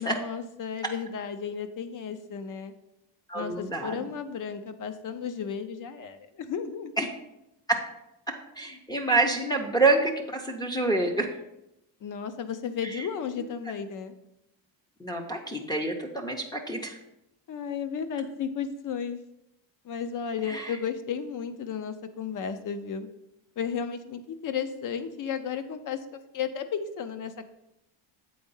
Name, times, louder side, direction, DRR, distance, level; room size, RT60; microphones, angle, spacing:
voice 1, 0.0-2.7 3.3-7.0 12.0-14.1 17.5-19.2 19.8-23.1 23.6-27.5, left 7 dB, 45° left, 10 dB, 0.7 m, -34 dB
voice 2, 3.3-4.0 7.0-7.1 8.6-11.3 15.0-17.0 20.5-20.6, right 3 dB, 10° left, -1 dB, 0.6 m, -27 dB
7.9 x 4.4 x 5.5 m, 0.86 s
cardioid pair, 160°, 47 cm